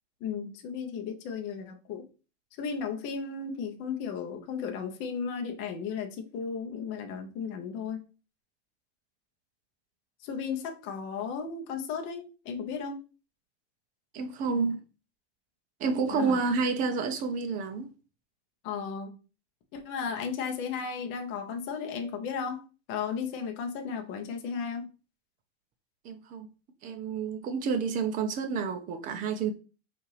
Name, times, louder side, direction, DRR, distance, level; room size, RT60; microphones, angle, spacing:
voice 1, 0.2-2.0 2.6-8.0 10.2-13.0 16.1-16.4 18.6-19.2 19.7-22.6 22.9-24.9, left 6 dB, 35° left, 0.7 m, -35 dB
voice 2, 14.1-14.8 15.8-17.9 26.0-26.5 26.8-29.5, right 5 dB, 25° right, 0.5 m, -29 dB
5.2 x 2.6 x 3.2 m
supercardioid pair, 140°, 35 cm